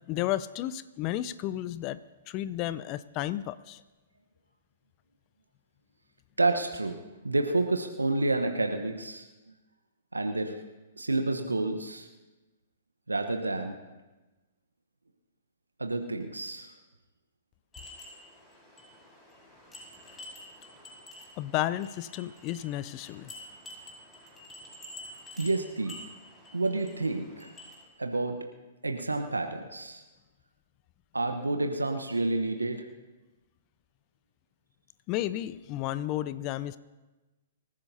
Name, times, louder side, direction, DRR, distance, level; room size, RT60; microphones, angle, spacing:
voice 1, 0.1-2.0 2.3-3.8 21.4-23.3 35.1-36.8, left 14 dB, 35° left, 15 dB, 0.6 m, -32 dB
voice 2, 6.4-7.0 7.2-9.3 10.1-10.6 11.0-12.1 13.1-13.8 15.8-16.7 25.4-26.0 26.5-27.5 28.0-28.5 28.8-30.0 31.1-32.8, right 2 dB, 90° right, 5 dB, 1.1 m, -29 dB
sound 1, 17.7-27.8, left 1 dB, 15° left, 4.9 m, -49 dB
25.5 x 15.0 x 2.8 m, 1.1 s
figure-of-eight pair, 115°, 0 cm